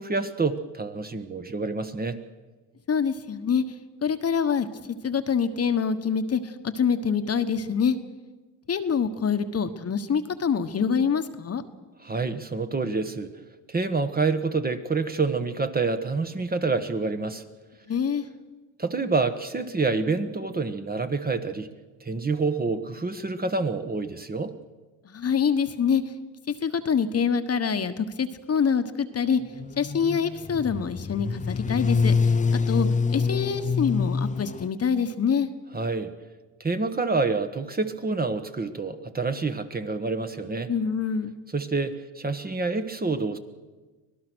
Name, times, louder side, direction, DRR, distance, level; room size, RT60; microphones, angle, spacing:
voice 1, 0.0-2.2 12.0-13.3 13.7-17.4 18.8-21.7 22.0-24.5 35.7-36.1 36.6-40.7 41.5-43.4, right 3 dB, 20° right, 9 dB, 1.4 m, -27 dB
voice 2, 2.9-3.6 4.0-4.7 5.0-8.0 8.7-11.6 17.9-18.2 25.0-26.0 26.5-29.4 29.8-35.5 40.7-41.4, left 6 dB, 35° left, 9 dB, 1.3 m, -25 dB
sound 1, 29.6-34.7, left 5 dB, 20° left, 0.6 m, -25 dB
25.0 x 18.0 x 6.3 m, 1.3 s
cardioid pair, 95°, 41 cm